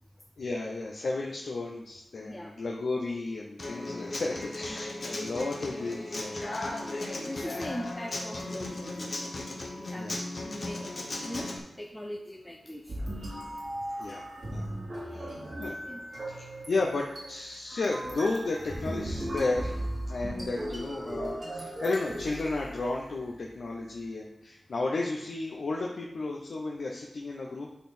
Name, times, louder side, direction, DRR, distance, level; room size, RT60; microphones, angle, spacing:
voice 1, 0.4-6.4 10.0-10.2 14.0-14.7 15.0-15.8 16.3-19.8 20.1-27.7, left 3 dB, 65° left, -1 dB, 0.8 m, -33 dB
voice 2, 2.2-2.5 4.7-5.2 6.7-9.4 9.8-10.1 10.4-11.5 11.8-12.9 15.2-16.0, left 1 dB, 10° left, 2 dB, 0.6 m, -41 dB
Human voice / Acoustic guitar, 3.6-11.6, left 2 dB, 40° left, 1.2 m, -36 dB
sound 1, 12.9-23.2, right 1 dB, 35° right, 2.9 m, -37 dB
11.5 x 4.1 x 4.3 m, 0.89 s
wide cardioid pair, 145°, 0 cm